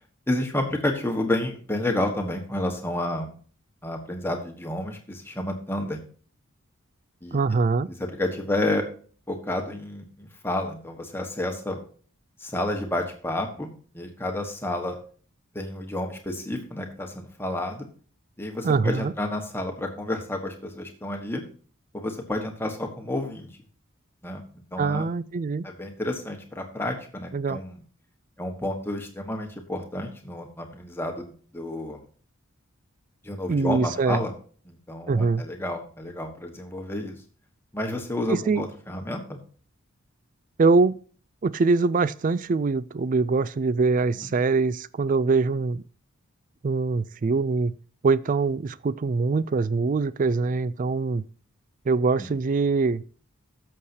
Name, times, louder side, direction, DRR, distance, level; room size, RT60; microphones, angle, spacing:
voice 1, 0.3-3.3 3.8-6.0 7.2-7.4 8.2-8.8 9.3-11.8 12.4-15.0 15.5-17.9 18.4-21.4 21.9-23.5 24.2-24.4 24.7-25.1 25.6-27.8 28.4-32.0 33.2-34.3 34.7-37.2 37.7-39.4 44.2-44.3 52.2-52.3, left 1 dB, 10° left, 1.3 m, -30 dB
voice 2, 7.3-7.9 18.6-19.1 24.8-25.6 27.3-27.6 33.5-34.2 35.1-35.4 38.3-38.6 40.6-41.0 41.4-45.8 46.6-47.7 48.0-51.2 51.9-53.0, right 4 dB, 35° right, 0.3 m, -23 dB
14.0 x 6.6 x 2.8 m
head